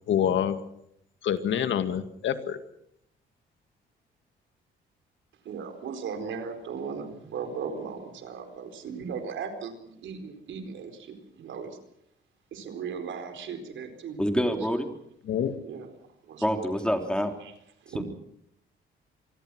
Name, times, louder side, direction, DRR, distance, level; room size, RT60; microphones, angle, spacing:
voice 1, 0.1-0.6 1.2-2.6 15.3-15.5, left 9 dB, 70° left, 9 dB, 2.0 m, -26 dB
voice 2, 5.4-11.8 12.5-14.6 15.6-15.9 16.2-16.8 17.4-17.5 17.8-18.0, right 6 dB, 75° right, 7 dB, 4.4 m, -37 dB
voice 3, 14.2-14.9 16.4-17.3 17.9-18.0, equal, 5° left, 5 dB, 3.6 m, -26 dB
27.0 x 20.5 x 6.3 m, 0.76 s
cardioid pair, 90°, 20 cm